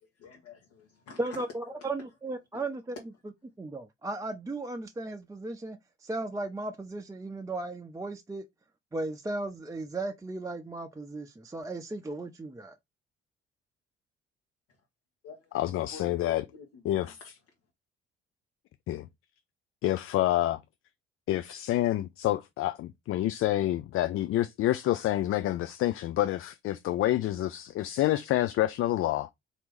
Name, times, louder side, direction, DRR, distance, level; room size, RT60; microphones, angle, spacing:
voice 1, 0.2-1.9 2.5-2.6 15.2-15.5 15.9-17.1, left 5 dB, 65° left, 1.2 m, -48 dB
voice 2, 1.2-3.0 3.6-8.4 8.9-12.7, right 2 dB, 10° right, 0.6 m, -36 dB
voice 3, 15.5-16.4 16.8-17.2 18.9-19.1 19.8-20.6 21.3-29.3, left 14 dB, 45° left, 0.4 m, -28 dB
4.1 x 2.9 x 3.5 m
figure-of-eight pair, 50°, 31 cm